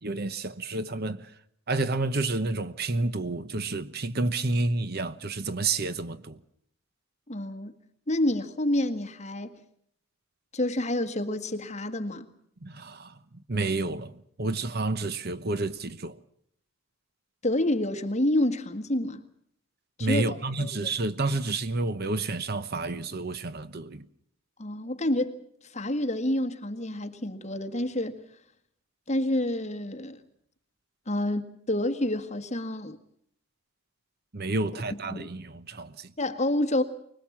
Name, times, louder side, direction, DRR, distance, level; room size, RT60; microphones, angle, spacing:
voice 1, 0.0-1.3 1.7-6.4 12.6-16.2 20.0-24.0 34.3-36.1, right 2 dB, 45° right, 1.0 m, -30 dB
voice 2, 7.3-7.7 8.1-9.6 10.5-12.3 17.4-19.2 20.0-20.7 24.6-28.2 29.1-30.2 31.1-33.0 35.1-35.3 36.2-36.8, left 1 dB, 30° left, 1.7 m, -28 dB
24.5 x 20.0 x 7.3 m
head